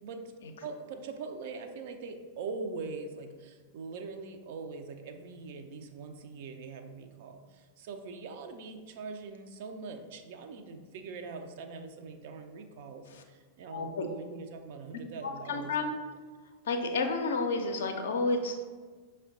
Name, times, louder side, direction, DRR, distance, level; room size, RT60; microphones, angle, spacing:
voice 1, 0.0-15.8, right 4 dB, 50° right, 6 dB, 0.4 m, -42 dB
voice 2, 13.7-14.1 15.2-16.0 16.6-18.6, left 3 dB, 60° left, 5 dB, 0.4 m, -31 dB
5.6 x 2.1 x 3.7 m, 1.5 s
figure-of-eight pair, 90°, 0 cm